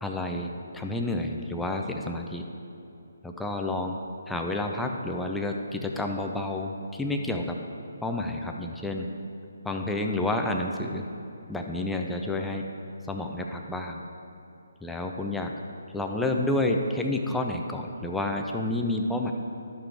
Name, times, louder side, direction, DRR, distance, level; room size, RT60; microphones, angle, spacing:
voice 1, 0.0-2.5 3.2-4.0 4.3-7.6 8.0-9.1 9.6-11.0 11.5-12.7 13.1-14.0 14.8-15.5 15.9-19.3, left 2 dB, 5° left, 2 dB, 0.5 m, -29 dB
12.5 x 5.8 x 3.5 m, 2.9 s
figure-of-eight pair, 140°, 0 cm